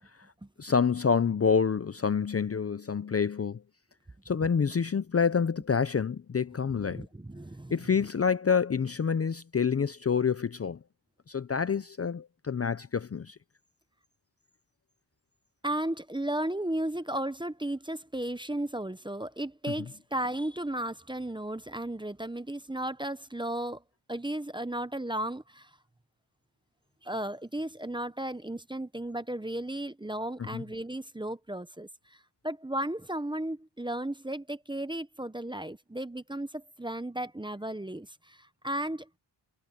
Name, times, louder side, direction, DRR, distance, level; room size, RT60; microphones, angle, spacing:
voice 1, 0.6-3.6 4.3-7.1 7.7-10.8 11.3-13.4 30.5-30.6, left 6 dB, 35° left, 0.5 m, -27 dB
voice 2, 6.7-7.9 15.6-23.8 24.1-25.7 27.0-39.2, right 1 dB, 10° right, 0.7 m, -35 dB
wide cardioid pair, 115°, 44 cm